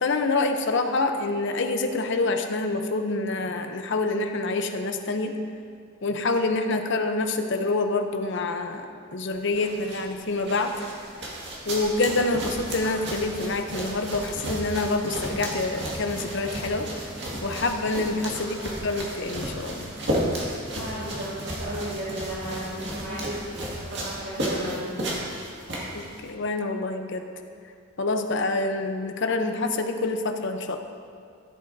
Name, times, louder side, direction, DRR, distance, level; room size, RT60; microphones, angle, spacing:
voice 1, 0.0-5.3 6.0-8.9 9.1-10.7 11.7-16.9 17.4-18.6 18.8-19.9 25.9-27.2 28.0-30.8, left 3 dB, 60° left, 5 dB, 0.7 m, -26 dB
sound 1, 9.3-26.3, right 1 dB, 55° right, 1.9 m, -33 dB
voice 2, 18.4-18.9 20.8-24.9, right 1 dB, 75° right, -10 dB, 1.9 m, -35 dB
14.5 x 8.2 x 2.7 m, 2.2 s
head